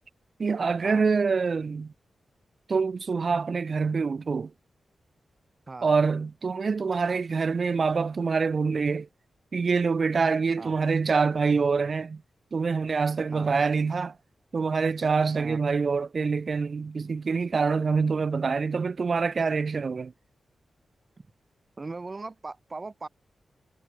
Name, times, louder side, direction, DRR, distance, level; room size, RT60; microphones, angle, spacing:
voice 1, 0.4-1.9 2.7-4.5 5.8-9.1 9.5-12.2 12.5-14.1 14.5-20.1, right 5 dB, 45° right, 0.4 m, -25 dB
voice 2, 5.7-6.0 10.6-10.7 13.3-13.5 15.4-15.6 21.2-21.3 21.8-23.1, right 3 dB, 30° right, 4.7 m, -39 dB
wide cardioid pair, 140°, 0 cm